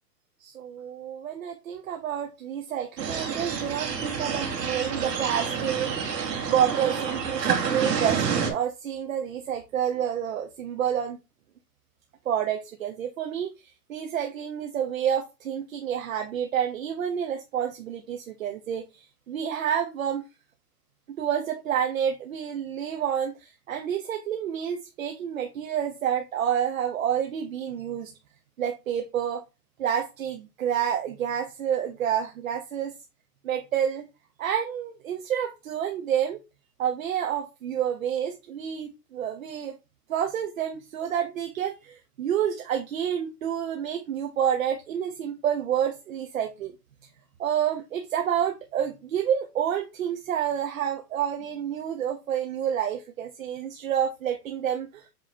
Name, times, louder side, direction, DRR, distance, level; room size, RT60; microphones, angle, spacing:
voice 1, 0.4-11.2 12.3-13.5 13.9-20.2 21.2-28.1 28.6-29.4 29.8-32.9 33.4-34.1 34.4-36.4 36.8-39.7 40.1-46.7 47.4-55.1, right 9 dB, 55° right, 0.9 m, -29 dB
sound 1, 3.0-8.5, right 6 dB, 80° right, 2.4 m, -28 dB
7.5 x 3.1 x 4.3 m
hypercardioid pair, 175°, 49 cm